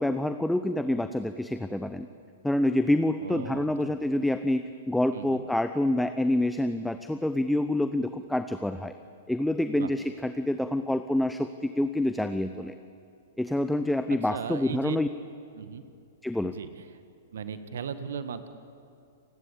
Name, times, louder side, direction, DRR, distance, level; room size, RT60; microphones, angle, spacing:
voice 1, 0.0-2.1 2.4-8.9 9.3-12.7 13.4-15.1 16.2-16.5, left 1 dB, 5° left, 10 dB, 0.9 m, -27 dB
voice 2, 3.2-4.0 5.1-5.5 9.7-9.9 14.3-15.0 15.5-15.8 16.4-17.0 17.3-18.5, right 7 dB, 65° right, 11 dB, 1.7 m, -37 dB
29.5 x 20.0 x 8.4 m, 2.5 s
figure-of-eight pair, 110°, 0 cm